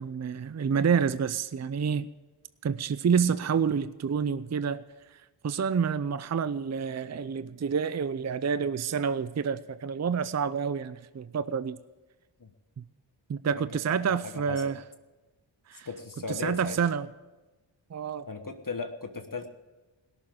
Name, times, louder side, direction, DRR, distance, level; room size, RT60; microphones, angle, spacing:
voice 1, 0.0-2.1 2.6-4.8 5.1-11.8 13.3-14.8 15.7-15.9 16.3-17.1 17.9-18.3, right 6 dB, 35° right, 15 dB, 0.5 m, -28 dB
voice 2, 13.9-14.7 15.8-16.8 18.3-19.5, left 4 dB, 40° left, 6 dB, 1.3 m, -37 dB
17.0 x 7.1 x 8.8 m, 1.2 s
cardioid pair, 40°, 49 cm